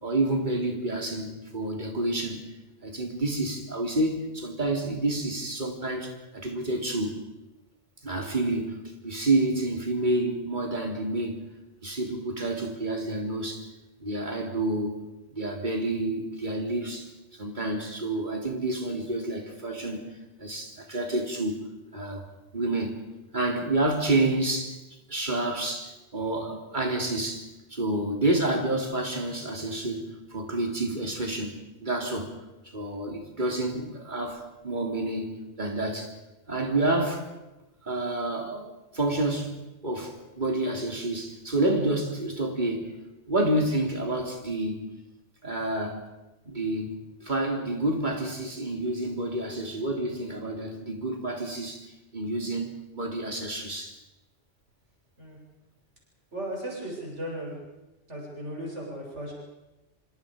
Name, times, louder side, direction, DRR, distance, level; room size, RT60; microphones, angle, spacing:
voice 1, 0.0-2.4 2.8-7.3 8.0-11.4 11.8-13.7 14.0-15.0 15.3-20.1 20.4-22.3 22.5-24.8 25.1-32.4 32.6-36.1 36.5-37.3 37.8-39.6 39.8-43.0 43.3-44.9 45.4-46.1 46.5-51.9 52.1-54.0, right 2 dB, 40° right, 3.6 m, -29 dB
voice 2, 56.3-57.5 58.1-59.3, right 1 dB, 85° right, 8.1 m, -36 dB
26.5 x 26.0 x 5.2 m
omnidirectional pair, 1.2 m